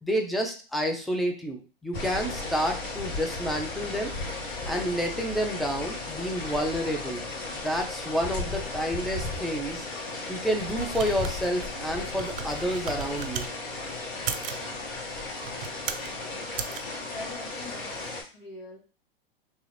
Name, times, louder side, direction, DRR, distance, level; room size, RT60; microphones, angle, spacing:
voice 1, 0.0-4.1 4.6-7.2 7.6-9.9 10.3-13.5, equal, ahead, 2 dB, 0.3 m, -29 dB
sound 1, 1.9-18.2, left 3 dB, 50° left, 1.5 m, -35 dB
sound 2, 10.3-13.5 14.1-14.7 15.3-16.1 16.5-16.8, right 7 dB, 70° right, 0.5 m, -36 dB
voice 2, 16.8-18.8, left 2 dB, 75° left, -3 dB, 1.4 m, -43 dB
3.2 x 2.4 x 3.2 m, 0.36 s
hypercardioid pair, 110°, 30 cm